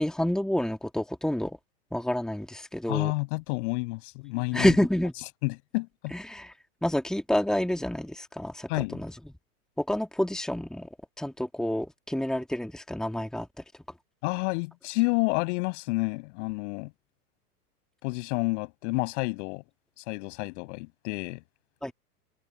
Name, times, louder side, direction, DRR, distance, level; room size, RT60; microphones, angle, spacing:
voice 1, 0.0-1.6 1.9-3.1 4.5-5.1 6.1-6.5 6.8-9.2 9.8-10.9 11.2-13.6 21.8-21.9, left 1 dB, ahead, 3.0 m, -28 dB
voice 2, 2.9-4.7 5.4-6.1 8.7-9.0 14.2-16.9 18.0-19.6 20.0-21.4, left 27 dB, 45° left, 7.8 m, -29 dB
figure-of-eight pair, 100°, 47 cm